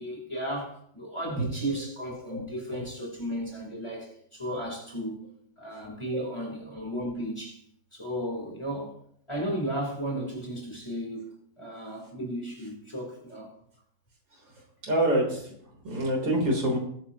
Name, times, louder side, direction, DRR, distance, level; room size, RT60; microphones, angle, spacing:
voice 1, 0.0-5.2 5.6-7.6 7.9-8.9 9.3-11.3 11.6-13.5, right 1 dB, 15° left, 3.6 m, -34 dB
voice 2, 2.3-2.8 4.5-4.6 6.1-6.2 14.3-14.4 14.8-16.8, right 1 dB, 70° right, 4.2 m, -27 dB
20.5 x 10.5 x 2.9 m
omnidirectional pair, 2.1 m